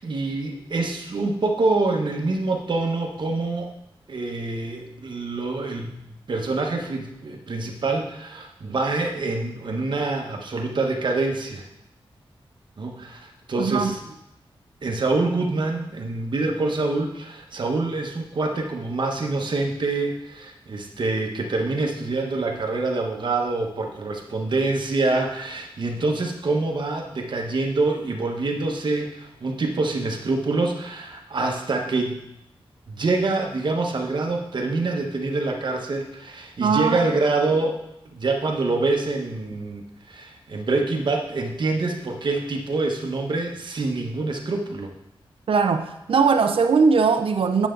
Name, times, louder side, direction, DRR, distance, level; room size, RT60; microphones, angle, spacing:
voice 1, 0.0-3.7 4.1-6.0 6.3-11.6 12.8-14.1 14.8-32.2 32.9-37.7 38.1-39.8 40.1-44.9, right 3 dB, 55° right, 2 dB, 1.3 m, -26 dB
voice 2, 13.6-13.9 36.6-37.0 45.5-47.7, right 5 dB, 70° right, 6 dB, 0.6 m, -20 dB
9.2 x 7.1 x 3.9 m, 0.84 s
wide cardioid pair, 135°, 10 cm